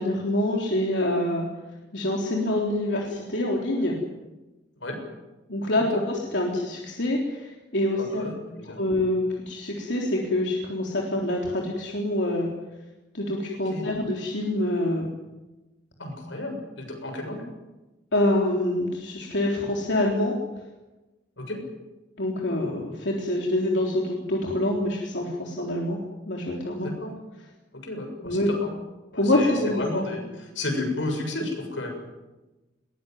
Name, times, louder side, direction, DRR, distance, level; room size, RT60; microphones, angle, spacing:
voice 1, 0.0-1.5 1.9-4.0 5.5-8.2 8.8-12.5 13.1-15.1 18.1-20.4 22.2-26.0 26.3-26.9 28.2-28.5 29.1-29.8, left 1 dB, 70° left, -1 dB, 3.7 m, -26 dB
voice 2, 8.0-8.8 13.7-13.9 16.0-17.4 21.4-21.6 26.8-27.1 27.7-28.7 29.1-31.9, left 2 dB, 90° left, 4 dB, 7.3 m, -32 dB
21.5 x 20.0 x 9.5 m, 1.1 s
head